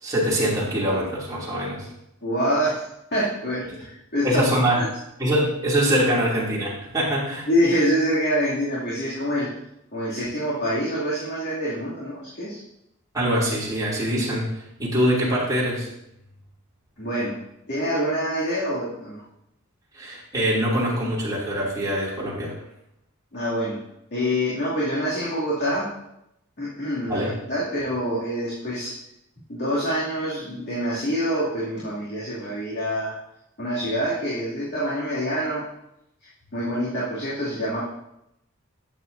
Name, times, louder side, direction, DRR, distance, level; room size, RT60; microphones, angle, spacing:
voice 1, 0.0-1.9 4.2-4.8 5.2-7.5 13.1-15.9 19.9-22.5 27.1-27.3, equal, 15° right, -7 dB, 2.8 m, -23 dB
voice 2, 2.2-2.8 3.1-4.4 4.7-4.9 7.5-9.5 9.9-12.6 17.0-17.4 17.7-19.2 23.3-23.8 24.1-25.9 26.6-28.9 29.5-33.2 33.6-35.6 36.5-37.9, equal, 50° left, -9 dB, 2.6 m, -26 dB
11.5 x 8.0 x 2.7 m, 0.81 s
head